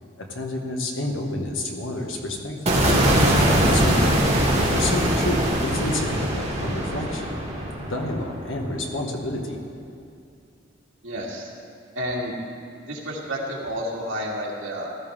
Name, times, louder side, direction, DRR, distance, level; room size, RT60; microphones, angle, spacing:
voice 1, 0.2-3.0 3.5-4.2 4.6-7.3 7.8-9.6, left 1 dB, 85° left, 1 dB, 1.7 m, -29 dB
sound 1, 2.7-8.9, right 1 dB, 30° right, 2.7 m, -22 dB
voice 2, 11.0-11.5 12.0-12.3 12.8-14.9, equal, 90° right, -3 dB, 2.4 m, -30 dB
15.5 x 13.0 x 3.7 m, 2.5 s
head